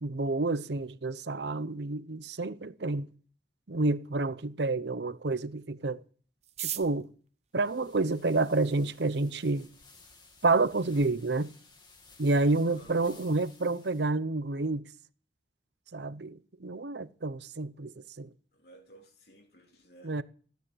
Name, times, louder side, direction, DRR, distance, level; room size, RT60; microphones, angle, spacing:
voice 1, 0.0-3.1 3.7-6.0 6.6-7.1 7.5-9.7 10.4-11.5 12.2-14.8 15.9-18.3 20.0-20.2, right 3 dB, 65° right, 0.8 m, -29 dB
sound 1, 6.4-8.7 9.5-9.6 9.8-9.9 10.1-10.6 10.9-11.0 11.2-11.7 12.0-12.2 12.5-12.8, right 12 dB, 35° right, 0.8 m, -40 dB
sound 2, 7.6-14.1, left 3 dB, 25° left, 2.4 m, -57 dB
voice 2, 12.7-13.3 18.5-20.2, right 2 dB, 55° left, 3.6 m, -56 dB
15.5 x 10.5 x 8.0 m
head